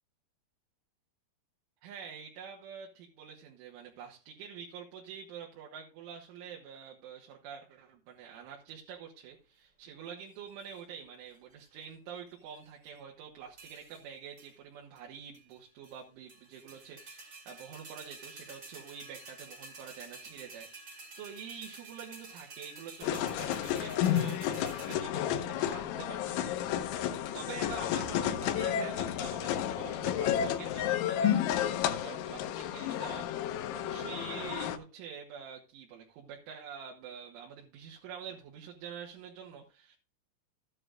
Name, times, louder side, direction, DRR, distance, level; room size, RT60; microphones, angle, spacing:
voice 1, 1.8-40.0, right 7 dB, 85° right, -1 dB, 3.9 m, -47 dB
sound 1, 10.3-10.8 11.3-11.8 12.3-13.0 13.6-14.1 14.4-14.5 15.0-15.1 15.3-16.0 16.3-24.9, right 3 dB, 35° right, 2.0 m, -50 dB
sound 2, 23.0-34.8, left 10 dB, 85° left, 3.3 m, -31 dB
13.5 x 9.7 x 2.5 m, 0.33 s
omnidirectional pair, 5.4 m